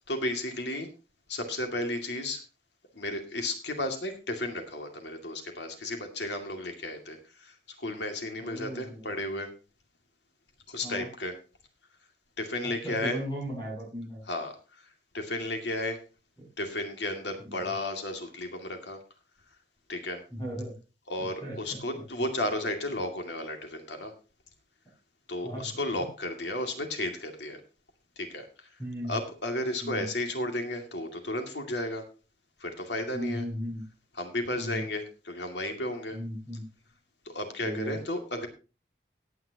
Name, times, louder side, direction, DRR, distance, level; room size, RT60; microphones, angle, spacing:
voice 1, 0.1-0.9 1.3-2.4 2.9-9.5 10.7-11.3 12.4-13.2 14.3-14.5 15.1-16.0 16.6-19.0 19.9-20.2 21.1-24.1 25.3-27.6 28.2-28.5 29.1-32.0 32.6-33.4 34.1-36.2 37.3-38.5, left 1 dB, 80° left, 5 dB, 2.4 m, -33 dB
voice 2, 8.4-9.0 10.8-11.1 12.8-14.2 17.4-17.6 20.3-20.7 21.4-21.6 25.4-25.7 28.8-29.1 29.8-30.0 33.1-33.8 34.6-34.8 36.1-36.6 37.6-38.0, equal, 20° left, -6 dB, 7.3 m, -36 dB
18.0 x 9.4 x 2.9 m, 0.31 s
head